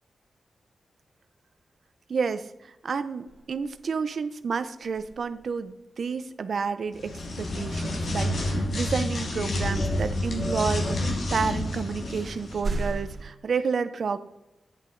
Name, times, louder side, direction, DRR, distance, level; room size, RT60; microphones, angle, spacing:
voice 1, 2.1-14.2, right 5 dB, 65° right, 11 dB, 0.6 m, -30 dB
sound 1, 3.3-4.0 4.8-5.8 9.3-9.4 11.4-11.5 12.2-13.3, right 2 dB, 40° right, 2.7 m, -35 dB
sound 2, 6.9-12.6, left 1 dB, 60° left, 1.7 m, -29 dB
12.0 x 10.0 x 3.9 m, 0.93 s
wide cardioid pair, 110°, 0 cm